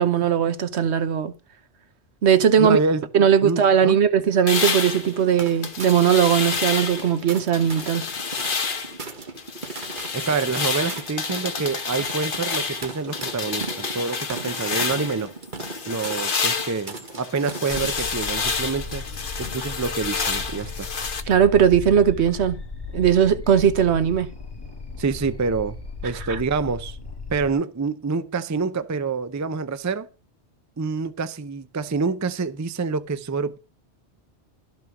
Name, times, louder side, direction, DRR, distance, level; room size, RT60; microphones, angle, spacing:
voice 1, 0.0-1.3 2.2-2.8 3.1-8.0 21.3-22.6 22.9-24.3 26.3-26.4, right 8 dB, 75° right, 1.2 m, -19 dB
voice 2, 2.6-3.0 3.4-4.0 10.1-15.3 15.9-19.0 19.4-20.9 25.0-25.8 26.0-27.0 27.3-30.1 30.8-33.6, right 4 dB, 25° right, 0.4 m, -27 dB
sound 1, 4.5-7.1 7.5-9.0 9.4-15.2 15.6-21.2, left 5 dB, 50° left, 1.2 m, -29 dB
sound 2, 4.6-17.9, right 3 dB, 45° right, 1.6 m, -38 dB
sound 3, 17.7-27.5, left 4 dB, 20° left, 1.8 m, -36 dB
12.5 x 6.1 x 5.9 m
omnidirectional pair, 1.2 m